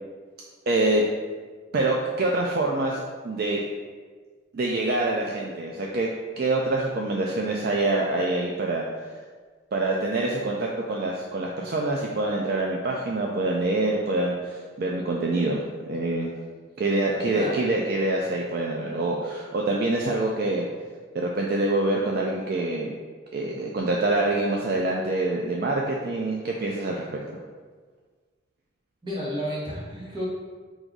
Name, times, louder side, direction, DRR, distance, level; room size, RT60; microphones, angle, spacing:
voice 1, 0.7-1.0 1.7-3.6 4.5-6.1 6.4-8.9 9.7-15.6 15.9-16.3 16.8-20.7 21.1-22.9 23.3-27.1, right 2 dB, 50° right, -1 dB, 0.3 m, -25 dB
voice 2, 17.1-17.6 29.0-30.3, equal, 25° right, -7 dB, 1.1 m, -32 dB
4.6 x 2.6 x 3.8 m, 1.5 s
head